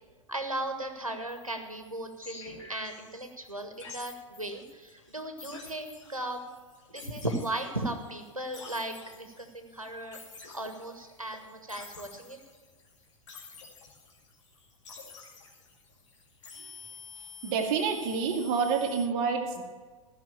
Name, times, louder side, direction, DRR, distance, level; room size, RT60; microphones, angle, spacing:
voice 1, 0.3-6.4 6.9-10.2 10.5-12.4, right 1 dB, 90° right, 5 dB, 1.5 m, -36 dB
sound 1, 1.3-19.1, left 5 dB, 60° left, 2.5 m, -50 dB
voice 2, 17.4-19.6, right 6 dB, 40° right, 2 dB, 1.8 m, -28 dB
14.5 x 6.0 x 7.2 m, 1.4 s
figure-of-eight pair, 95°, 17 cm